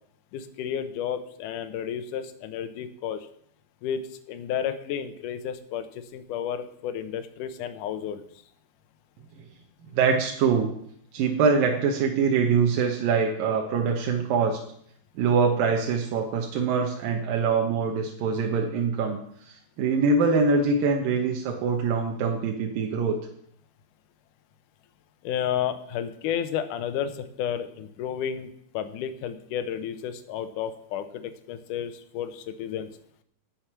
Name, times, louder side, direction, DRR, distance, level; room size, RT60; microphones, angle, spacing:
voice 1, 0.3-3.3 3.8-8.2 25.2-32.9, left 9 dB, 70° left, 8 dB, 2.2 m, -32 dB
voice 2, 10.0-10.7 11.1-14.6 15.2-19.2 19.5-23.2, right 5 dB, 70° right, 2 dB, 2.7 m, -24 dB
17.0 x 6.6 x 5.9 m, 0.68 s
omnidirectional pair, 4.4 m